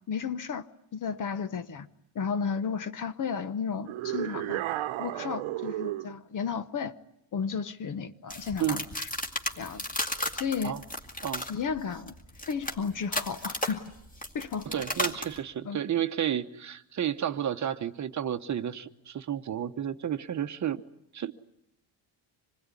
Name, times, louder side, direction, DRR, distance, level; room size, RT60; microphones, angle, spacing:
voice 1, 0.1-0.7 0.9-1.9 2.1-4.6 5.0-7.0 7.3-9.1 9.6-9.9 10.3-10.7 11.5-12.1 12.5-13.8 14.3-14.7 15.6-15.8, left 6 dB, 40° left, 1.0 m, -33 dB
sound 1, 3.9-6.2, right 15 dB, 70° right, 1.1 m, -33 dB
sound 2, 8.3-15.4, left 1 dB, 15° left, 2.3 m, -34 dB
voice 2, 14.7-20.8 21.1-21.3, right 10 dB, 35° right, 1.0 m, -31 dB
26.0 x 20.5 x 9.8 m
cardioid pair, 150°, 49 cm